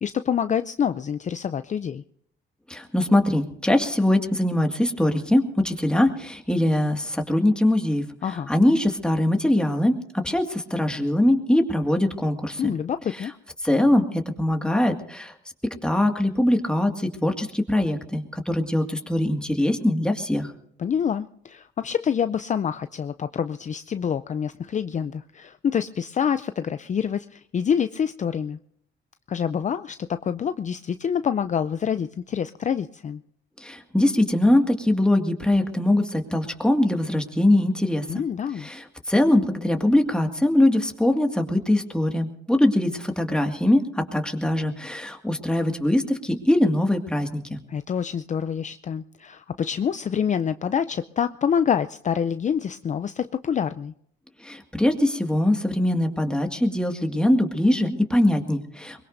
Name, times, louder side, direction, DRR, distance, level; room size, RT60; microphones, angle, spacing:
voice 1, 0.0-2.0 8.2-8.5 12.6-13.3 20.8-28.6 29.3-33.2 38.1-38.7 47.7-53.9, left 7 dB, 40° left, 11 dB, 0.5 m, -26 dB
voice 2, 2.7-8.0 8.5-12.7 13.6-15.3 15.8-20.5 33.6-38.2 38.6-47.6 54.4-59.1, left 1 dB, 5° left, 4 dB, 2.0 m, -22 dB
23.0 x 21.5 x 2.7 m, 0.70 s
cardioid pair, 90°, 20 cm